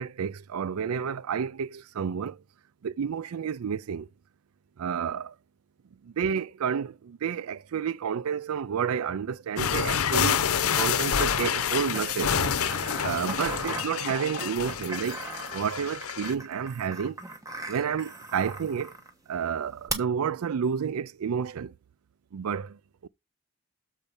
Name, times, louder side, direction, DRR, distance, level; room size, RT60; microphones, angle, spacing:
voice 1, 0.0-2.4 2.8-4.1 4.8-5.4 6.0-10.5 10.8-12.5 13.0-15.3 15.5-17.2 17.7-18.9 19.3-21.7 22.3-23.1, right 7 dB, 85° right, 0.4 m, -30 dB
sound 1, 9.6-16.3, left 8 dB, 85° left, 0.7 m, -28 dB
sound 2, 11.4-19.1 19.9-20.0, right 3 dB, 15° right, 1.1 m, -39 dB
7.0 x 4.6 x 5.2 m
head